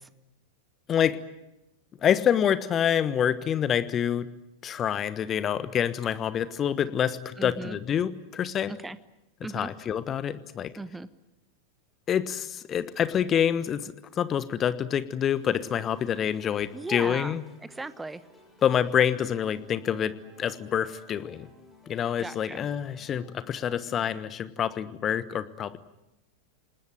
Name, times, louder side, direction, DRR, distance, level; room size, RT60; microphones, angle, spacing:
voice 1, 0.9-1.2 2.0-4.3 4.6-8.7 9.5-10.7 12.1-17.4 18.6-21.5 21.9-25.8, left 9 dB, 25° left, 14 dB, 1.3 m, -27 dB
voice 2, 7.4-7.8 8.7-9.0 9.4-9.7 10.7-11.1 16.7-18.2 22.2-22.7, right 3 dB, 10° right, 16 dB, 1.1 m, -37 dB
sound 1, 15.2-23.2, left 2 dB, 5° left, 7.5 m, -55 dB
28.5 x 19.5 x 9.1 m, 0.93 s
figure-of-eight pair, 90°, 0 cm